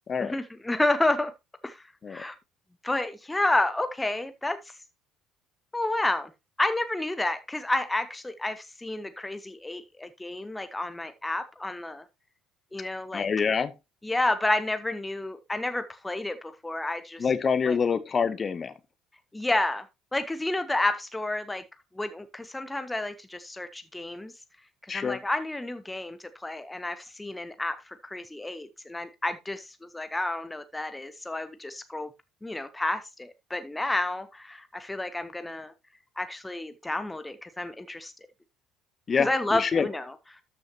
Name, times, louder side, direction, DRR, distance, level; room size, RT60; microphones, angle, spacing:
voice 1, 0.2-1.3 1.6-2.3 2.8-4.6 5.7-6.3 6.6-12.0 12.7-13.3 14.0-17.3 17.6-17.8 19.3-19.8 20.1-21.6 22.0-24.3 24.9-32.1 32.4-35.7 36.2-38.1 39.2-40.1, left 2 dB, 10° left, 0.8 m, -30 dB
voice 2, 13.1-13.7 17.2-18.7 24.9-25.2 39.1-39.9, left 6 dB, 35° left, 1.0 m, -26 dB
13.0 x 6.3 x 2.8 m
figure-of-eight pair, 55°, 0 cm